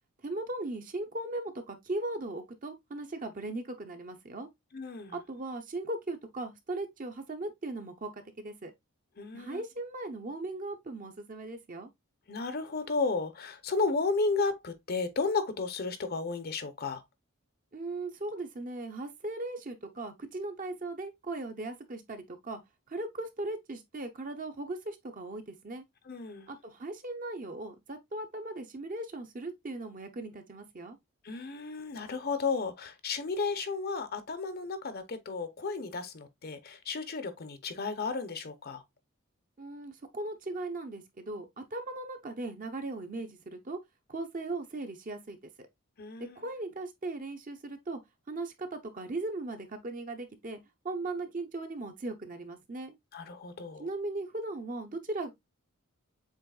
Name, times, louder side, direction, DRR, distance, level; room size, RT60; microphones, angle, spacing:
voice 1, 0.2-4.5 5.3-8.7 9.3-11.9 17.7-22.6 22.9-25.8 26.5-31.0 39.6-43.8 44.1-45.7 46.4-48.0 48.3-50.6 50.8-52.9 53.8-55.3, right 2 dB, 40° right, 0.8 m, -38 dB
voice 2, 4.7-5.1 9.2-9.6 12.3-17.0 26.1-26.5 31.2-38.8 46.0-46.4 53.1-53.9, left 4 dB, 45° left, 0.7 m, -33 dB
7.4 x 3.1 x 2.3 m
head